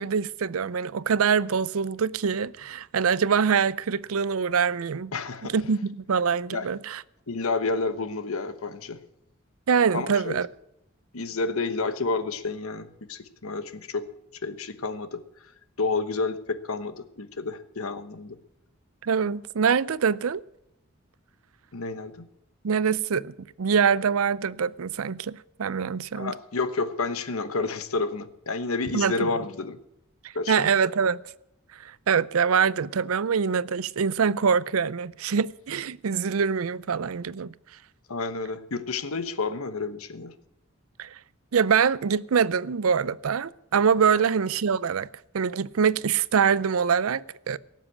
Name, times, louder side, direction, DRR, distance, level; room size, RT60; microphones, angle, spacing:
voice 1, 0.0-5.1 5.4-7.0 9.7-10.5 19.0-20.4 22.6-26.3 28.9-29.3 30.5-31.2 31.8-37.5 41.0-41.1 41.5-45.1 45.3-47.6, right 6 dB, 85° right, 0.5 m, -24 dB
voice 2, 5.1-5.5 6.5-6.7 7.3-9.0 9.9-10.4 11.1-14.0 14.4-15.2 15.8-18.4 21.7-22.1 26.2-29.8 30.3-30.7 38.1-40.3, left 3 dB, 90° left, 1.1 m, -30 dB
18.0 x 7.5 x 8.5 m
head